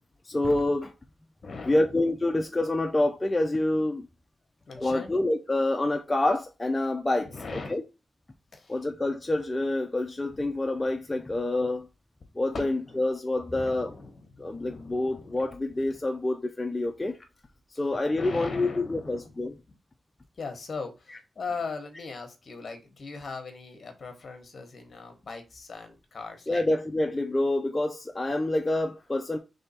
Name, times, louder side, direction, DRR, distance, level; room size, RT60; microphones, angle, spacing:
voice 1, 0.3-0.9 1.7-4.1 4.8-7.8 8.7-11.9 12.4-13.9 14.4-17.2 17.8-19.5 26.5-29.4, left 2 dB, 20° left, 0.5 m, -27 dB
voice 2, 1.4-2.2 4.7-5.1 7.3-7.8 8.5-8.8 10.3-10.5 12.5-13.0 13.5-15.5 15.8-16.0 18.1-19.4 19.7-19.8 20.4-26.6, left 4 dB, 50° left, 1.1 m, -40 dB
3.4 x 3.3 x 4.2 m
wide cardioid pair, 120°, 0 cm